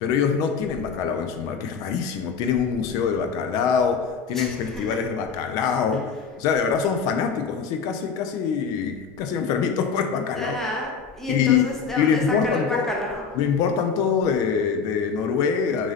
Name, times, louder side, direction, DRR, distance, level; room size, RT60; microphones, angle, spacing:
voice 1, 0.0-6.1 6.4-10.6 11.3-11.6 12.0-12.9 13.4-15.9, left 6 dB, 55° left, 6 dB, 0.4 m, -24 dB
voice 2, 4.3-5.0 5.9-6.0 10.4-13.3, equal, 5° left, -2 dB, 0.7 m, -30 dB
2.9 x 2.6 x 2.8 m, 1.4 s
supercardioid pair, 115°, 8 cm